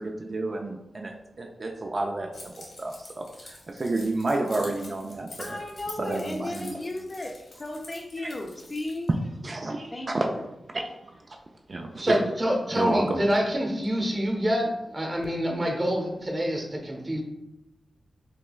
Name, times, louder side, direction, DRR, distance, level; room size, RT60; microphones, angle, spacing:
voice 1, 0.0-5.6 6.0-6.8 8.2-8.3 9.4-10.3 10.7-10.9 11.7-12.2 12.8-13.2, right 2 dB, 40° right, 1 dB, 0.3 m, -30 dB
Keys jangling, 2.3-9.1, left 2 dB, 65° left, 1.2 m, -47 dB
voice 2, 5.4-9.1 9.9-10.5, left 2 dB, 30° left, 2 dB, 0.4 m, -35 dB
voice 3, 12.0-17.2, equal, 25° right, 1 dB, 0.7 m, -26 dB
6.0 x 2.2 x 2.3 m, 0.91 s
wide cardioid pair, 120°, 0 cm